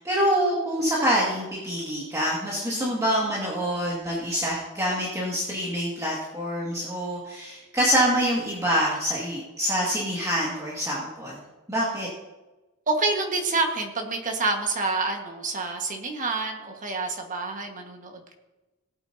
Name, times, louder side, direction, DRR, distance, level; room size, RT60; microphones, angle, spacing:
voice 1, 0.0-11.4 11.7-12.1, equal, 15° right, -6 dB, 2.1 m, -26 dB
voice 2, 12.9-18.3, right 3 dB, 35° right, 2 dB, 1.6 m, -28 dB
17.5 x 9.0 x 2.8 m, 1.1 s
head